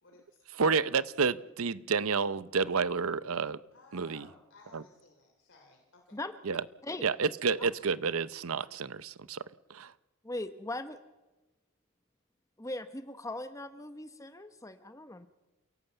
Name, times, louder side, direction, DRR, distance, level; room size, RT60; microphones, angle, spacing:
voice 1, 0.0-0.4 3.7-6.2, left 3 dB, 55° left, 2 dB, 3.1 m, -58 dB
voice 2, 0.5-3.6 3.9-4.3 4.7-4.8 6.5-6.6 7.0-9.4 9.7-9.9, right 5 dB, 70° right, 17 dB, 0.7 m, -30 dB
voice 3, 10.2-11.0 12.6-15.3, left 2 dB, 15° left, 10 dB, 0.9 m, -39 dB
28.0 x 17.0 x 8.1 m, 1.1 s
head